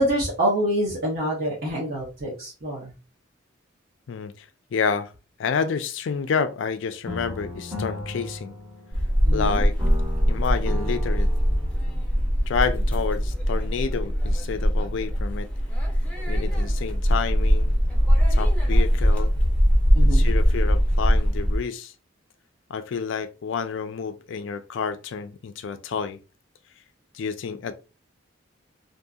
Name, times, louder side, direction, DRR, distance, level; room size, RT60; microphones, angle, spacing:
voice 1, 0.0-2.9 9.2-9.6 19.9-20.3, right 1 dB, 55° right, 0.8 m, -26 dB
voice 2, 4.1-5.1 5.4-8.6 9.3-9.8 10.3-11.3 12.5-15.5 16.3-17.8 18.3-19.3 20.0-21.9 22.7-26.2 27.1-27.7, left 6 dB, 70° left, 0.4 m, -29 dB
sound 1, 7.1-9.4 9.8-12.0, left 1 dB, 10° right, 0.9 m, -36 dB
sound 2, 8.9-21.6, equal, 5° left, 0.6 m, -21 dB
2.7 x 2.6 x 2.3 m
head